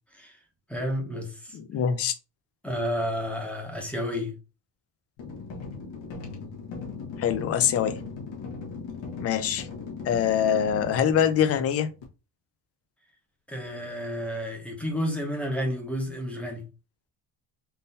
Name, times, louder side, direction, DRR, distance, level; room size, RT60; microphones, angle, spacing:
voice 1, 0.7-1.6 2.6-4.3 13.5-16.6, equal, 5° left, 0.8 m, -31 dB
voice 2, 1.5-2.1 7.2-7.9 9.2-9.7 10.1-11.9, left 8 dB, 35° left, 0.4 m, -24 dB
sound 1, 5.2-12.0, left 4 dB, 80° left, 1.3 m, -38 dB
3.9 x 2.6 x 3.9 m
cardioid pair, 170°, 45 cm